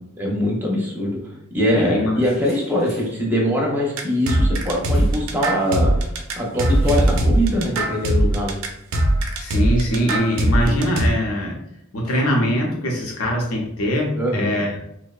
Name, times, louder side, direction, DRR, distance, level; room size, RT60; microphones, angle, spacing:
voice 1, 0.2-1.2 1.5-6.1 6.4-8.6 14.1-14.7, equal, 10° right, -2 dB, 0.5 m, -22 dB
voice 2, 1.7-2.2 9.4-11.6 11.9-14.8, equal, 75° left, 0 dB, 0.6 m, -22 dB
sound 1, 2.2-3.2 4.9-5.3 5.6-5.9 6.7-9.0, equal, 30° left, 0.9 m, -37 dB
sound 2, 4.0-11.1, right 1 dB, 70° right, 0.4 m, -20 dB
2.6 x 2.0 x 2.3 m, 0.80 s
head